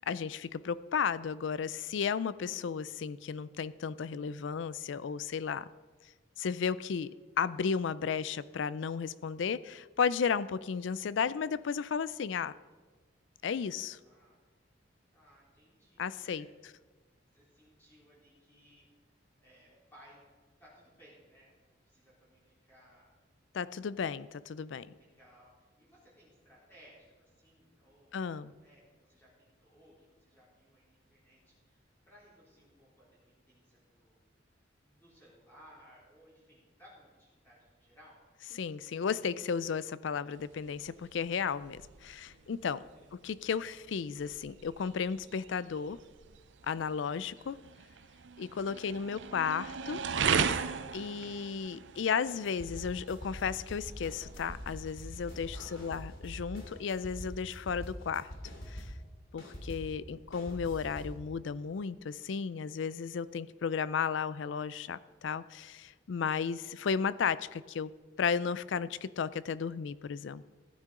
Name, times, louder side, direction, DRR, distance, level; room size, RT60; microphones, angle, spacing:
voice 1, 0.1-5.7 6.4-7.1 7.4-12.5 13.4-14.0 16.0-16.5 23.5-24.9 28.1-28.5 38.5-42.8 43.1-46.0 46.7-47.6 48.4-50.0 50.9-58.3 58.7-58.8 59.3-67.9 68.2-70.4, left 6 dB, 70° left, 17 dB, 0.4 m, -34 dB
voice 2, 14.0-14.4 15.1-16.4 17.3-18.9 19.4-20.3 20.6-23.1 24.9-34.3 34.8-38.2 42.3-43.5 48.7-48.9 55.5-56.0, equal, 10° left, -8 dB, 3.7 m, -61 dB
sound 1, 40.3-55.9, right 6 dB, 70° right, 0.6 m, -38 dB
sound 2, 52.4-59.1 59.4-61.2, equal, 85° left, 2.9 m, -44 dB
15.5 x 9.5 x 3.7 m, 1.3 s
head